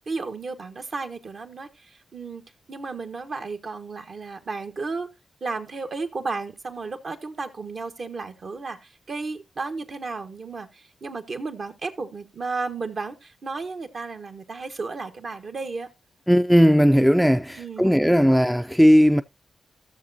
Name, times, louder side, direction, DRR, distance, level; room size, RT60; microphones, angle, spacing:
voice 1, 0.1-2.4 2.7-5.1 5.4-15.9 17.5-17.9, right 4 dB, 60° right, 1.3 m, -33 dB
voice 2, 16.3-19.2, equal, ahead, 0.4 m, -17 dB
14.0 x 6.8 x 2.7 m
supercardioid pair, 40°, 0 cm